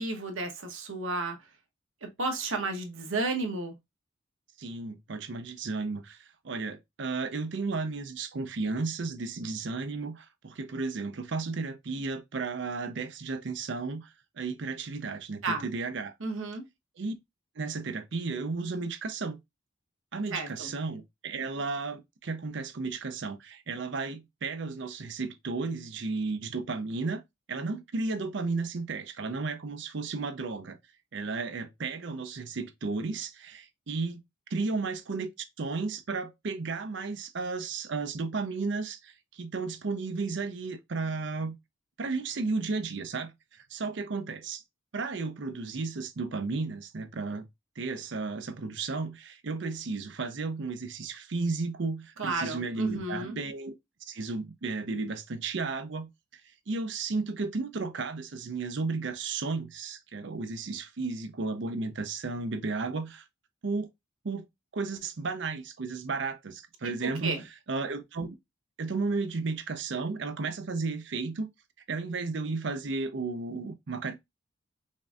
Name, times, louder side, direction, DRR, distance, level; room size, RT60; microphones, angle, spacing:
voice 1, 0.0-1.4 2.0-3.7 15.4-15.7 16.2-16.6 20.3-20.7 52.2-53.4 66.8-67.4, right 3 dB, 85° right, 1.0 m, -32 dB
voice 2, 4.6-14.1 14.4-16.1 17.0-17.1 17.6-19.4 20.1-27.2 27.5-30.8 31.1-34.2 34.5-35.3 35.6-41.6 42.0-43.3 43.7-44.6 44.9-47.5 47.8-53.7 54.1-56.1 56.7-63.2 63.6-63.9 64.2-64.5 64.7-67.4 67.7-68.4 68.8-71.5 71.9-74.1, right 4 dB, 60° right, 0.5 m, -33 dB
5.3 x 2.6 x 2.3 m
head